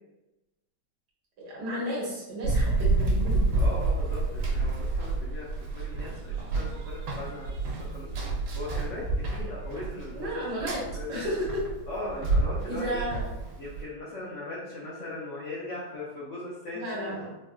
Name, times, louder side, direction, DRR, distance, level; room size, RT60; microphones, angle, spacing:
voice 1, 1.4-3.5 10.1-10.8 11.1-11.6 12.7-13.2 16.7-17.3, equal, 60° right, -5 dB, 1.5 m, -32 dB
Run, 2.4-13.8, right 2 dB, 80° right, 1.4 m, -29 dB
voice 2, 3.5-10.4 10.7-11.3 11.9-13.0 13.6-17.1, left 2 dB, 70° left, -7 dB, 0.7 m, -39 dB
4.5 x 2.4 x 2.2 m, 1.0 s
omnidirectional pair, 2.2 m